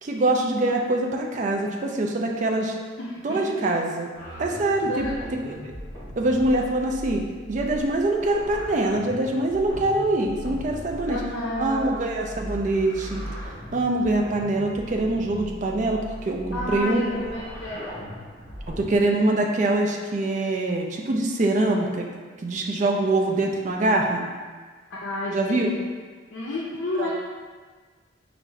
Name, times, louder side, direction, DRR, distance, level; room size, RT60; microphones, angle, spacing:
voice 1, 0.0-2.8 3.2-4.1 4.4-5.1 5.5-5.6 6.2-11.2 11.6-13.2 13.7-17.4 18.8-22.1 22.4-24.2 25.3-25.7 27.0-27.1, right 2 dB, 40° right, 1 dB, 0.3 m, -24 dB
voice 2, 3.0-3.7 4.8-5.1 11.1-11.9 16.5-17.9 24.9-25.7 26.3-27.1, left 1 dB, 70° left, -5 dB, 0.5 m, -31 dB
sound 1, 4.1-19.0, equal, 20° left, 1.2 m, -38 dB
4.6 x 2.5 x 3.2 m, 1.5 s
head